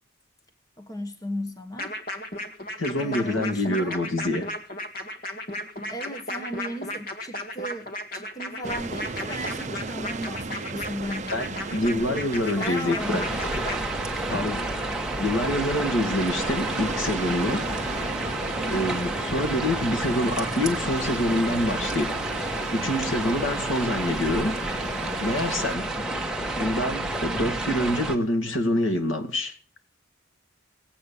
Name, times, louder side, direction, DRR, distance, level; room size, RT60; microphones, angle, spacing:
voice 1, 0.8-1.9 2.9-4.0 5.8-12.3 12.6-13.2 18.5-19.0, equal, 15° left, 1.2 m, -36 dB
sound 1, 1.8-13.7, left 1 dB, 45° left, 1.9 m, -34 dB
voice 2, 2.8-4.5 11.3-13.2 14.3-14.6 15.2-17.7 18.7-22.2 22.7-24.6 25.2-25.9 26.6-29.5, left 1 dB, 75° left, 2.2 m, -26 dB
sound 2, 8.6-25.8, right 4 dB, 35° right, 0.6 m, -36 dB
sound 3, 13.0-28.2, right 1 dB, 5° right, 1.3 m, -30 dB
18.0 x 8.5 x 7.0 m
head